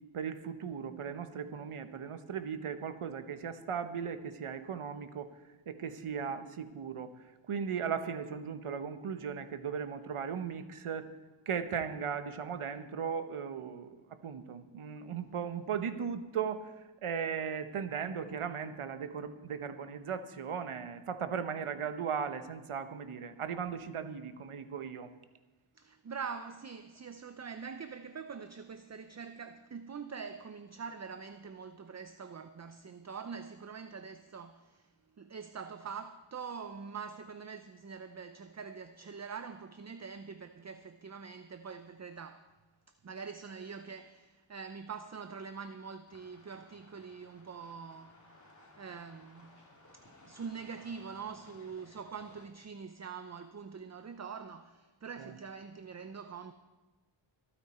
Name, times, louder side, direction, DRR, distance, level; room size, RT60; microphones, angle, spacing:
voice 1, 0.1-5.3 5.7-7.1 7.5-11.1 11.5-13.9 14.2-25.1 55.2-55.3, right 7 dB, 85° right, 1.1 m, -37 dB
voice 2, 25.8-34.9 35.2-42.5 43.0-48.1 48.8-49.6 49.9-56.5, right 6 dB, 35° right, 0.6 m, -44 dB
sound 1, 46.1-52.5, left 1 dB, 35° left, 2.8 m, -59 dB
25.0 x 8.9 x 4.3 m
wide cardioid pair, 110°, 49 cm